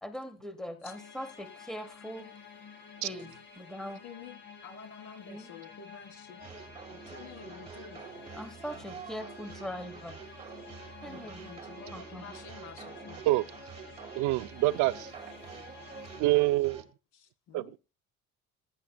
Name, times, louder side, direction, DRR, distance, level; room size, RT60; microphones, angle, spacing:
voice 1, 0.0-2.3 3.0-4.0 5.3-5.5 8.3-10.2 11.0-11.5 11.9-12.2, equal, ahead, 1.2 m, -41 dB
sound 1, 0.9-16.2, left 6 dB, 40° left, 2.6 m, -51 dB
voice 2, 3.9-6.6 6.9-8.1 11.0-13.2 17.1-17.8, left 6 dB, 75° left, 3.5 m, -50 dB
sound 2, 6.4-16.8, right 6 dB, 20° right, 2.2 m, -47 dB
voice 3, 14.1-15.1 16.2-16.8 17.5-17.8, right 18 dB, 80° right, 0.6 m, -26 dB
21.0 x 10.0 x 2.3 m
cardioid pair, 175°, 30 cm